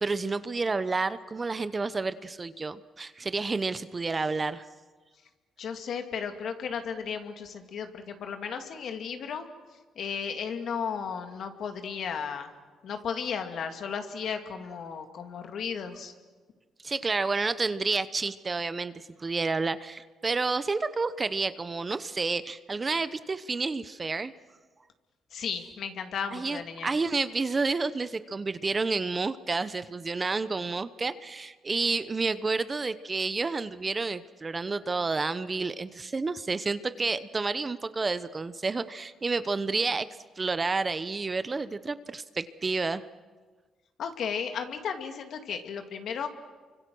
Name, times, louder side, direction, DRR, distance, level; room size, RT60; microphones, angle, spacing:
voice 1, 0.0-4.6 16.8-24.3 26.3-40.1 40.4-43.1, right 3 dB, 30° right, 13 dB, 0.9 m, -30 dB
voice 2, 5.6-9.5 10.0-12.5 12.8-16.1 25.3-26.9 44.0-46.3, left 6 dB, 65° left, 6 dB, 2.4 m, -34 dB
29.5 x 25.0 x 6.3 m, 1.4 s
cardioid pair, 90°, 0 cm